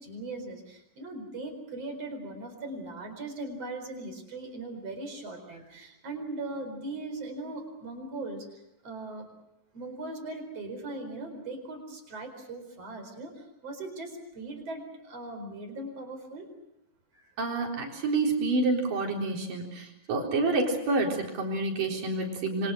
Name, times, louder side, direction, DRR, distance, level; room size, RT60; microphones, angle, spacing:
voice 1, 0.0-9.3 9.7-16.5 17.1-17.3, right 2 dB, 50° right, 6 dB, 5.6 m, -39 dB
voice 2, 17.4-22.7, right 3 dB, 80° right, 0 dB, 5.7 m, -28 dB
27.0 x 25.5 x 6.5 m, 0.86 s
omnidirectional pair, 3.8 m